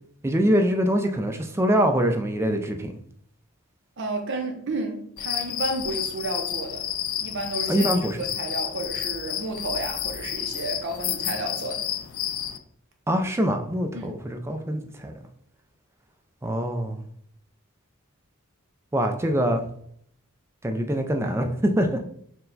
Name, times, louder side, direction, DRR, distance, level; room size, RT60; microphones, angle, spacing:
voice 1, 0.2-2.9 7.7-8.2 13.1-15.2 16.4-17.0 18.9-19.6 20.6-22.0, equal, 10° right, 0.3 m, -24 dB
voice 2, 4.0-6.9 7.2-11.8 13.9-14.2, right 2 dB, 55° right, 0.6 m, -32 dB
sound 1, 5.2-12.6, left 10 dB, 65° left, 0.3 m, -30 dB
4.5 x 2.1 x 3.9 m
head